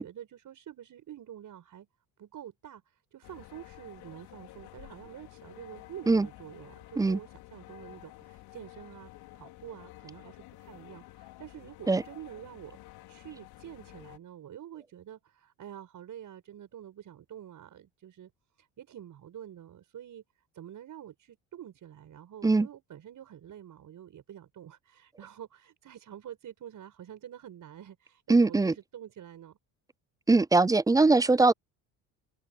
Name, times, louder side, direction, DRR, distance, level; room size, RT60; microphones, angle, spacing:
voice 1, 0.0-1.9 2.2-12.8 13.1-18.3 18.6-20.2 20.5-29.6, right 10 dB, 55° right, 5.9 m, -47 dB
sound 1, 3.2-14.2, left 17 dB, 75° left, 4.8 m, -51 dB
voice 2, 28.3-28.7 30.3-31.5, right 3 dB, 10° right, 0.5 m, -21 dB
supercardioid pair, 85°, 38 cm